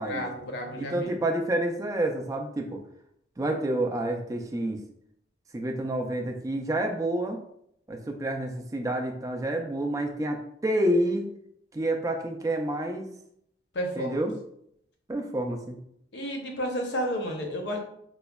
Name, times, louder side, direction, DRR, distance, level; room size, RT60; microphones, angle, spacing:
voice 1, 0.0-1.2 13.7-14.1 16.1-17.8, equal, 65° left, 2 dB, 0.7 m, -31 dB
voice 2, 0.8-2.8 3.4-4.8 5.5-7.4 7.9-11.3 11.7-13.1 14.0-14.3 15.1-15.8, right 1 dB, 20° right, 3 dB, 0.3 m, -28 dB
4.8 x 2.1 x 2.2 m, 0.73 s
head